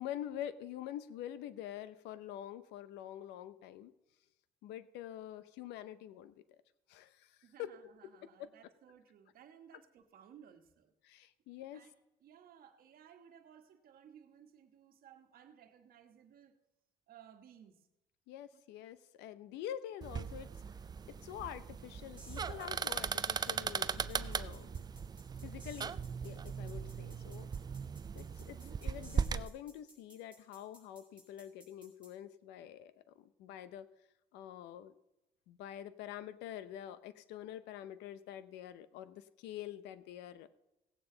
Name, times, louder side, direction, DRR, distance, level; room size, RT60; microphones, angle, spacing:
voice 1, 0.0-3.9 4.6-6.3 6.9-7.3 7.6-7.7 8.4-8.5 11.0-11.8 18.3-20.5 21.1-24.8 25.4-27.5 28.1-33.9 34.3-34.9 35.5-40.5, left 11 dB, 90° left, 14 dB, 0.7 m, -46 dB
voice 2, 7.4-10.9 11.7-11.9 12.2-16.5 17.1-17.9 18.5-18.6 28.5-28.8, right 9 dB, 60° right, 6 dB, 1.4 m, -59 dB
sound 1, 20.0-29.5, right 6 dB, 25° right, 0.3 m, -39 dB
sound 2, 22.2-32.1, right 1 dB, 10° right, 4.6 m, -59 dB
16.5 x 8.8 x 3.9 m, 0.92 s
cardioid pair, 110°, 17 cm